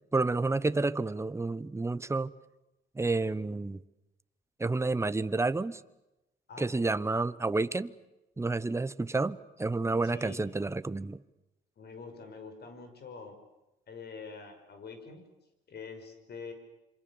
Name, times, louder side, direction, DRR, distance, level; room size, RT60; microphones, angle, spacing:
voice 1, 0.1-2.3 3.0-3.8 4.6-5.8 6.6-7.9 8.4-11.2, right 3 dB, 15° right, 15 dB, 0.9 m, -30 dB
voice 2, 6.5-7.0 10.0-10.5 11.8-13.4 13.9-15.3 15.7-16.5, left 4 dB, 55° left, 7 dB, 5.5 m, -45 dB
27.0 x 25.0 x 7.1 m, 0.96 s
cardioid pair, 90°, 20 cm